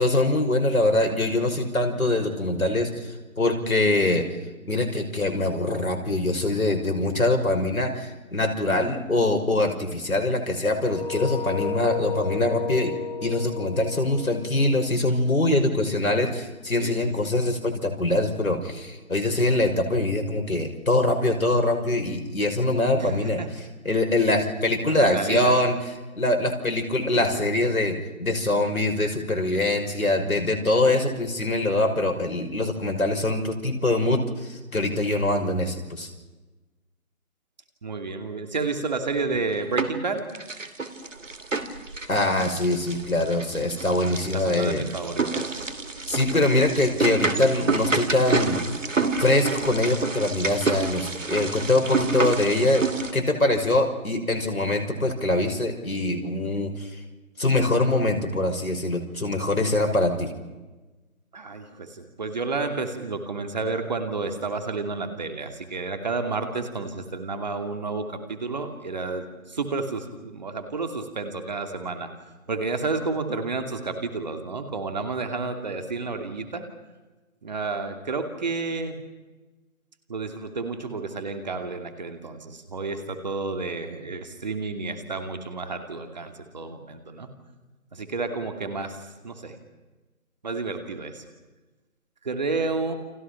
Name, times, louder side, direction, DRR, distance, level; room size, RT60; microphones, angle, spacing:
voice 1, 0.0-4.3 4.7-12.9 13.2-23.4 23.8-25.8 26.2-36.1 42.1-44.9 46.1-48.6 49.2-52.8 53.1-56.9 57.4-60.3, left 2 dB, 80° left, 4 dB, 5.9 m, -23 dB
sound 1, 10.7-15.6, left 5 dB, 30° left, 2.9 m, -33 dB
voice 2, 16.8-17.1 23.0-23.5 24.9-25.6 27.1-27.4 37.8-40.2 44.3-45.6 61.3-72.1 72.5-76.6 77.4-79.0 80.1-87.3 87.9-89.6 90.4-91.2 92.2-92.9, right 3 dB, 30° right, 6 dB, 2.6 m, -31 dB
sound 2, 39.2-40.0 40.3-53.1, right 4 dB, 60° right, 2.8 m, -28 dB
30.0 x 26.0 x 5.8 m, 1.2 s
figure-of-eight pair, 165°, 42 cm